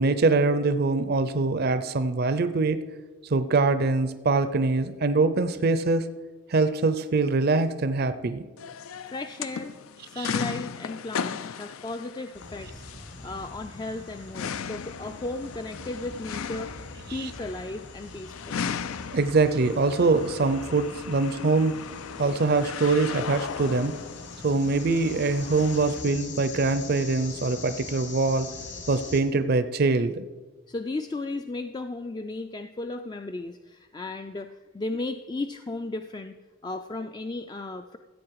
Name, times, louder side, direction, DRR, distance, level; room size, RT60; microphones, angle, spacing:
voice 1, 0.0-2.8 3.3-6.1 6.5-8.4 10.2-10.3 17.1-17.3 19.1-21.8 22.2-23.9 24.4-28.5 28.9-30.2, right 3 dB, 50° right, 12 dB, 0.5 m, -23 dB
sound 1, 8.6-26.0, left 7 dB, 80° left, 0.4 m, -37 dB
voice 2, 9.1-9.8 10.0-12.8 13.2-16.8 17.1-19.2 30.7-36.4 36.6-38.0, left 2 dB, 20° left, 7 dB, 0.3 m, -35 dB
sound 2, 12.3-29.2, left 3 dB, 60° left, 2.2 m, -43 dB
14.5 x 8.2 x 4.7 m, 1.3 s
head